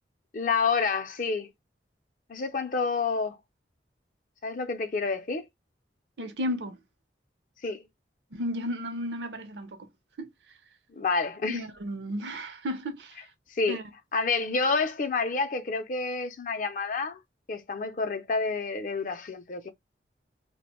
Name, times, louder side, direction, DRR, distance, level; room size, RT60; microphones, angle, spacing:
voice 1, 0.3-1.5 2.3-3.4 4.4-5.5 7.6-7.8 10.9-11.7 13.5-13.8 14.1-17.2 17.5-19.7, left 4 dB, 45° left, 0.4 m, -29 dB
voice 2, 6.2-6.8 8.3-9.9 10.2-10.3 11.5-13.2 13.7-13.8, equal, 70° right, 0.6 m, -33 dB
2.5 x 2.1 x 2.8 m
head